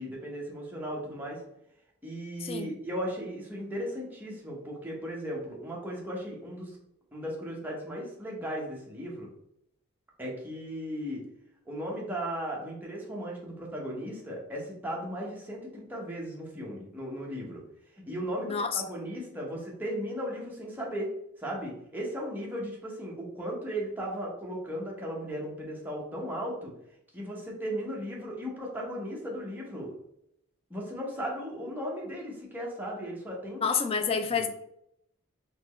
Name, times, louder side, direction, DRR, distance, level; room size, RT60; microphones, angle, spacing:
voice 1, 0.0-1.4 2.0-6.8 7.1-9.3 10.2-11.2 11.7-17.6 18.1-21.1 21.4-26.7 27.1-29.9 30.7-33.6 34.3-34.5, equal, 10° right, 1.0 m, -36 dB
voice 2, 2.4-2.7 18.4-18.8 33.6-34.5, left 5 dB, 30° left, 0.3 m, -28 dB
4.2 x 3.2 x 3.1 m
head